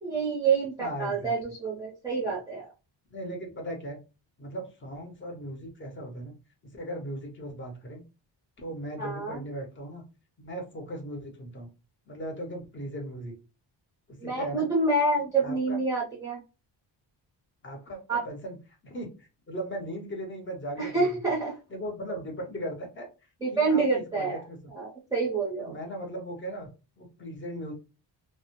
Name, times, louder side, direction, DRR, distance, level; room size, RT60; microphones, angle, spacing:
voice 1, 0.0-2.7 9.0-9.4 14.2-16.4 18.1-18.2 20.8-21.5 23.4-24.4 24.7-25.7, right 3 dB, 10° right, -5 dB, 0.6 m, -27 dB
voice 2, 0.8-1.3 3.1-4.0 4.4-6.3 6.7-8.0 8.6-10.0 10.4-11.7 12.1-13.3 14.1-14.7 15.4-15.8 17.6-18.6 18.8-21.1 21.7-23.1 23.5-24.6 25.6-26.7 27.0-27.7, equal, 25° left, 2 dB, 0.8 m, -38 dB
2.1 x 2.0 x 3.0 m, 0.31 s
cardioid pair, 120°, 46 cm